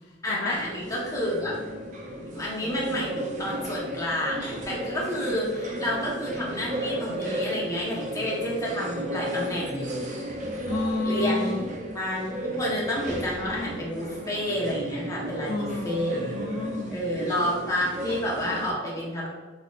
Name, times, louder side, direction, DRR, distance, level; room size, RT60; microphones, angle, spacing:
voice 1, 0.2-1.6 2.1-10.1 11.0-11.6 11.9-16.3 16.9-19.3, equal, 20° left, -6 dB, 1.1 m, -30 dB
sound 1, 0.5-18.7, equal, 40° right, 0.6 m, -34 dB
voice 2, 10.7-11.7 15.4-17.0, left 2 dB, 60° left, 0 dB, 0.4 m, -30 dB
4.1 x 3.7 x 2.5 m, 1.3 s
head